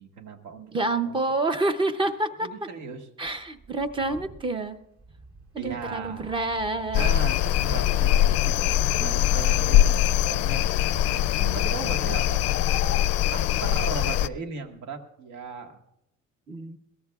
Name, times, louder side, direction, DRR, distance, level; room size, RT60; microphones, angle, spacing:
voice 1, 0.0-1.2 2.4-3.1 5.6-6.4 6.9-10.7 11.1-12.6 13.3-15.8, right 4 dB, 75° right, 3 dB, 1.7 m, -37 dB
voice 2, 0.7-2.5 3.2-4.8 5.5-7.1 11.4-11.8 16.5-16.8, right 2 dB, 15° right, 10 dB, 0.6 m, -28 dB
sound 1, 3.3-13.0, right 2 dB, 45° right, 2.5 m, -47 dB
sound 2, 6.9-14.3, left 12 dB, 55° left, 0.4 m, -22 dB
21.5 x 17.0 x 2.4 m, 0.82 s
cardioid pair, 170°, 30 cm